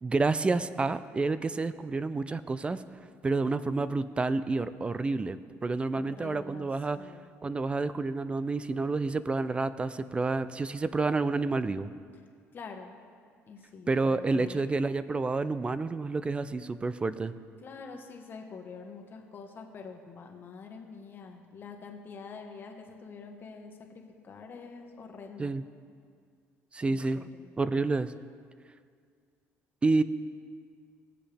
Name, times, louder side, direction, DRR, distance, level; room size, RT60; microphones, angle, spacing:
voice 1, 0.0-2.8 3.2-5.4 5.6-7.0 7.4-11.9 13.9-17.3 25.4-25.6 26.7-27.2 27.6-28.1 29.8-30.0, right 3 dB, 20° right, 14 dB, 0.4 m, -29 dB
voice 2, 5.9-7.3 12.5-12.9 13.5-14.7 17.6-25.5 26.9-27.5, left 5 dB, 40° left, 2 dB, 1.4 m, -46 dB
18.5 x 7.6 x 3.5 m, 2.1 s
cardioid pair, 105°, 5 cm